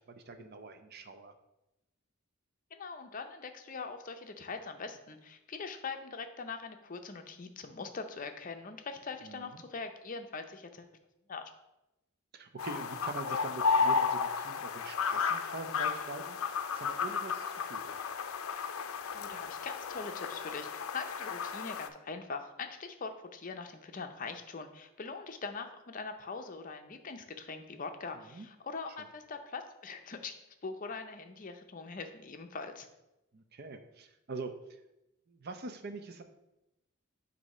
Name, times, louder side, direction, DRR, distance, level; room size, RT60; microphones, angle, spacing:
voice 1, 0.0-1.3 9.2-9.6 12.3-16.4 16.7-18.0 28.2-28.5 33.3-34.5 35.3-36.2, right 3 dB, 50° right, 7 dB, 0.6 m, -44 dB
voice 2, 2.7-10.9 11.3-11.4 19.1-32.9, left 4 dB, 40° left, 6 dB, 0.6 m, -42 dB
sound 1, 12.6-21.9, left 5 dB, 85° left, 0.5 m, -33 dB
7.9 x 2.7 x 5.4 m, 0.92 s
head